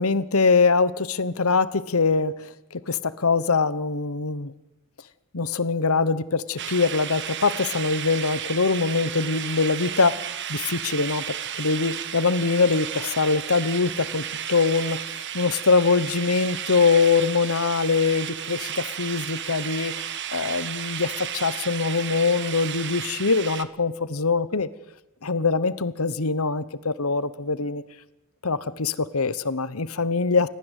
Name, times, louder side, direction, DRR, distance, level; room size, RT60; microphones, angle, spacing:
voice 1, 0.0-4.5 5.3-10.1 10.5-11.2 11.5-24.7 25.2-27.8 28.4-30.5, left 4 dB, 75° left, 16 dB, 1.1 m, -23 dB
sound 1, 6.6-23.6, right 9 dB, 55° right, 1.4 m, -33 dB
29.5 x 15.0 x 8.3 m, 0.89 s
head